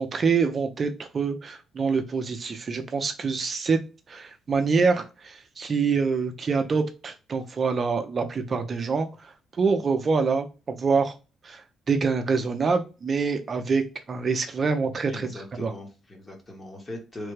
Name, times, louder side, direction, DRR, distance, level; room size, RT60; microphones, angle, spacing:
voice 1, 0.0-3.8 4.1-11.1 11.4-11.6 11.9-15.7, right 5 dB, 40° right, 6 dB, 0.5 m, -26 dB
voice 2, 15.1-17.3, left 1 dB, 30° left, 2 dB, 1.2 m, -40 dB
3.2 x 2.1 x 3.2 m, 0.31 s
cardioid pair, 90°, 0 cm